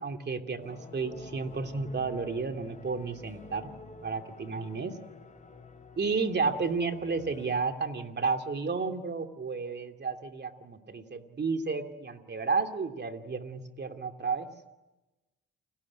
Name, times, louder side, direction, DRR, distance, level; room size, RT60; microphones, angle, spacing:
voice 1, 0.0-3.7 4.0-4.9 6.0-14.5, right 4 dB, 35° right, 6 dB, 2.8 m, -32 dB
sound 1, 0.6-7.6, left 3 dB, 25° left, 4.0 m, -49 dB
29.5 x 20.5 x 10.0 m, 1.1 s
cardioid pair, 90°, 30 cm